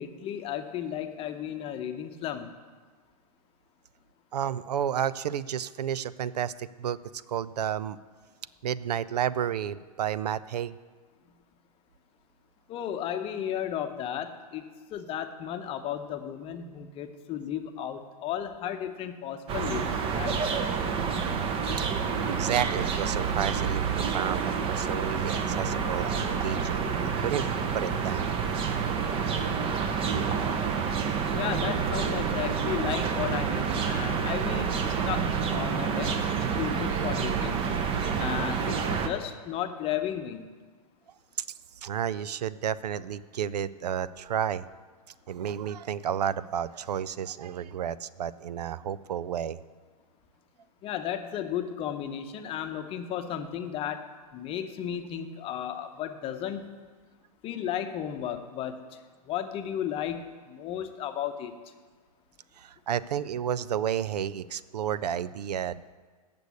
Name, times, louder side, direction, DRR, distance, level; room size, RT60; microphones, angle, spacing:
voice 1, 0.0-2.5 12.7-20.4 31.3-37.6 38.2-40.4 50.8-54.1 54.3-56.7 57.4-58.8 59.3-61.5, left 10 dB, 30° left, 7 dB, 0.8 m, -34 dB
voice 2, 4.3-7.0 7.3-8.0 8.6-10.8 22.3-28.6 29.1-29.8 30.1-30.3 41.8-44.7 45.3-49.6 62.6-65.9, right 9 dB, 85° right, 18 dB, 0.4 m, -31 dB
sound 1, 19.5-39.1, right 6 dB, 25° right, 0.8 m, -28 dB
8.1 x 6.8 x 8.2 m, 1.4 s
hypercardioid pair, 125°, 20 cm